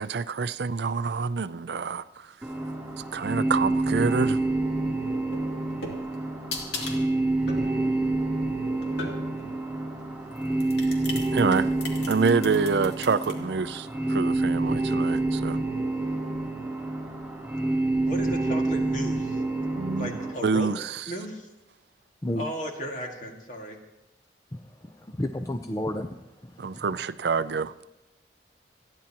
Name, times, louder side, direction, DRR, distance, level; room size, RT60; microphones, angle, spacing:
voice 1, 0.0-2.3 3.1-4.4 11.3-11.7 12.1-15.6 19.8-21.0 26.6-27.7, right 5 dB, 65° right, 14 dB, 0.4 m, -27 dB
sound 1, 2.4-20.3, right 2 dB, 5° right, 3.5 m, -28 dB
sound 2, 5.2-9.5 10.3-13.3, left 2 dB, 75° left, 2.3 m, -38 dB
voice 2, 18.1-19.4 20.0-20.7 21.1-21.5 22.4-23.8, right 1 dB, 45° left, 1 dB, 2.0 m, -35 dB
voice 3, 24.5-26.8, left 1 dB, 20° left, 6 dB, 0.5 m, -32 dB
27.5 x 10.5 x 2.9 m, 0.97 s
head